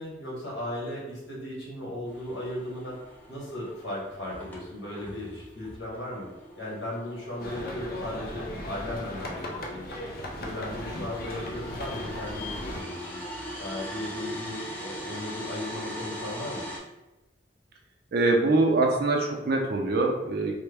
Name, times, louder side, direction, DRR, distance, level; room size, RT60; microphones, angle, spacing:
voice 1, 0.0-3.0 3.3-6.3 6.6-10.1 10.4-13.2 13.6-16.7, left 1 dB, 80° left, -4 dB, 1.3 m, -36 dB
sound 1, 2.1-16.8, equal, 10° left, 0.5 m, -41 dB
sound 2, 7.4-12.8, left 1 dB, 60° left, 0.5 m, -37 dB
voice 2, 18.1-20.5, right 2 dB, 60° right, 1 dB, 0.5 m, -23 dB
3.2 x 2.1 x 3.4 m, 1.0 s
head